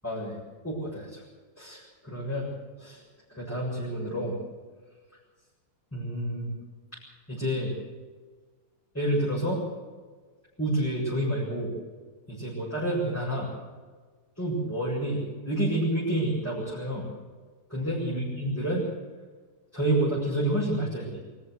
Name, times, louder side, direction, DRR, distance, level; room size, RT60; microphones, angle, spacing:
voice 1, 0.0-1.2 1.6-2.4 2.8-3.0 3.3-4.4 5.9-6.5 7.3-7.7 8.9-9.6 10.6-11.7 12.3-13.5 14.4-17.1 17.7-18.8 19.7-21.2, right 1 dB, 10° left, -8 dB, 7.4 m, -29 dB
25.0 x 14.0 x 8.0 m, 1.4 s
omnidirectional pair, 1.7 m